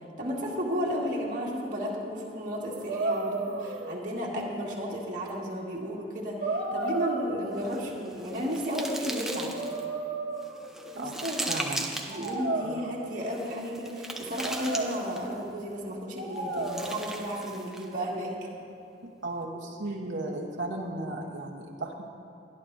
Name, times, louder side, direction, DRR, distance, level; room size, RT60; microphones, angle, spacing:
voice 1, 0.2-9.6 10.9-11.6 12.1-18.4 19.9-20.0, equal, 45° right, -4 dB, 2.0 m, -33 dB
sound 1, 2.7-4.4 5.3-5.4 6.4-7.9 8.9-11.2 12.1-13.3 14.0-15.4 16.2-17.2, right 2 dB, 60° right, 1.5 m, -34 dB
sound 2, 7.6-9.8 10.4-12.3 13.2-15.4 16.4-17.9, right 1 dB, ahead, 0.7 m, -38 dB
voice 2, 11.5-11.9 12.6-12.8 19.0-22.1, right 2 dB, 85° right, -1 dB, 1.1 m, -35 dB
22.5 x 10.5 x 2.7 m, 2.9 s
head